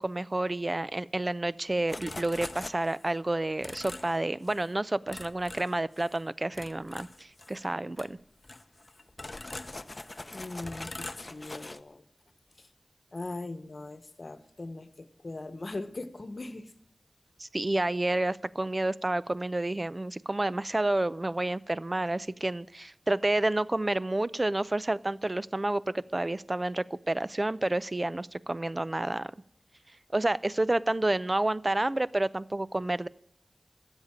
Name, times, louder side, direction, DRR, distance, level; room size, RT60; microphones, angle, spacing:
voice 1, 0.0-8.2 17.4-29.3 30.1-33.1, right 2 dB, 35° right, 18 dB, 0.5 m, -29 dB
sound 1, 1.9-3.1 3.6-4.1 4.4-4.7 5.1-6.2 6.5-7.6 8.0-8.1 8.4-11.8, left 2 dB, 40° left, 0.7 m, -42 dB
voice 2, 10.3-12.0 12.6-12.7 13.1-16.7, left 2 dB, 55° left, 11 dB, 1.1 m, -40 dB
13.0 x 8.1 x 9.8 m, 0.72 s
wide cardioid pair, 60°, 0 cm